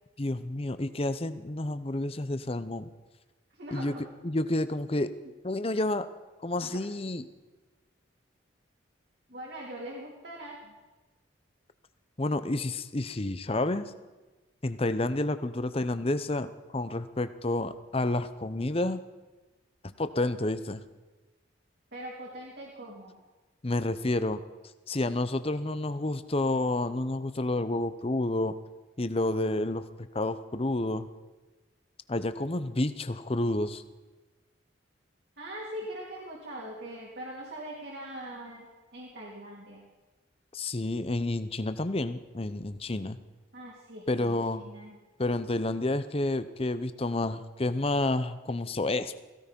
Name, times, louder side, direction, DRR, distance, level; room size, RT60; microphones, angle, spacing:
voice 1, 0.2-2.9 3.7-3.9 4.2-5.1 5.4-6.1 6.4-7.2 12.2-13.9 14.6-19.0 19.8-20.8 23.6-24.4 24.9-28.5 29.0-31.1 32.1-33.8 40.5-43.2 44.1-44.6 45.2-49.1, left 2 dB, 30° left, 12 dB, 0.7 m, -30 dB
voice 2, 3.5-4.0 6.6-6.8 9.3-10.7 21.9-23.2 35.4-38.7 38.9-39.9 43.5-45.0, right 1 dB, 55° right, -4 dB, 3.1 m, -42 dB
17.0 x 16.0 x 5.3 m, 1.2 s
head